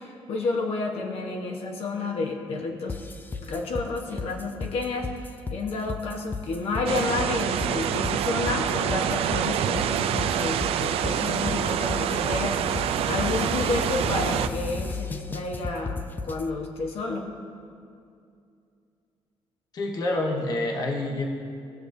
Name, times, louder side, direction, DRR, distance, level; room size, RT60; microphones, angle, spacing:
voice 1, 0.0-3.0 3.5-17.3, left 3 dB, 75° left, 0 dB, 1.0 m, -30 dB
sound 1, 2.9-16.5, left 4 dB, 20° left, 0.4 m, -34 dB
sound 2, 6.9-14.5, right 9 dB, 75° right, 0.4 m, -26 dB
voice 2, 19.7-21.2, left 2 dB, 40° left, 1 dB, 1.0 m, -27 dB
17.5 x 6.8 x 2.6 m, 2.4 s
cardioid pair, 140°, 10 cm